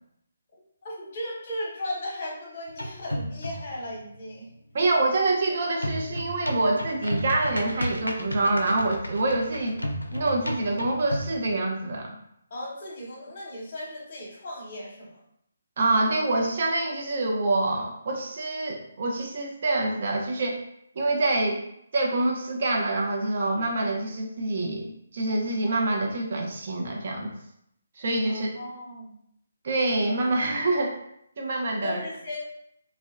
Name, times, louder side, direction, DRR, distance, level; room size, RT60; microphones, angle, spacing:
voice 1, 0.8-4.5 12.5-15.2 28.3-29.1 31.8-32.4, left 1 dB, 40° left, -3 dB, 0.9 m, -36 dB
sound 1, 2.7-3.8 5.8-11.4, equal, 90° left, 0.4 m, -33 dB
voice 2, 4.7-9.8 10.1-12.2 15.8-20.6 21.0-21.6 21.9-27.3 28.0-28.5 29.6-31.0 31.4-32.0, right 2 dB, 45° right, 1 dB, 0.4 m, -26 dB
2.7 x 2.0 x 2.3 m, 0.74 s
figure-of-eight pair, 145°, 0 cm